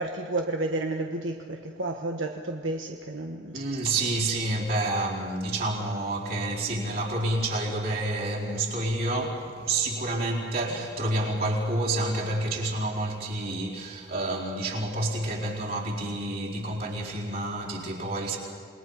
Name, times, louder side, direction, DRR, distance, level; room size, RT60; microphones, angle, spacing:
voice 1, 0.0-3.6, right 2 dB, 80° right, 1.2 m, -31 dB
voice 2, 3.5-18.4, right 2 dB, 50° right, 4.4 m, -29 dB
28.5 x 21.5 x 5.7 m
head